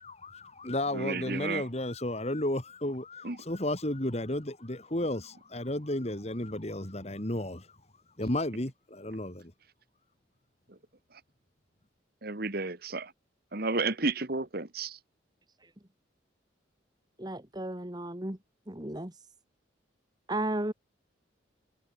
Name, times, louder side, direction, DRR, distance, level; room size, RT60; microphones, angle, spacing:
voice 1, 0.0-7.7 8.2-9.5, left 1 dB, 35° left, 2.3 m, -33 dB
voice 2, 0.9-1.6 3.2-3.4 12.2-13.1 13.5-15.0, right 3 dB, 50° right, 1.6 m, -32 dB
voice 3, 17.2-18.4 18.7-19.2 20.3-20.7, right 1 dB, 20° right, 1.5 m, -34 dB
head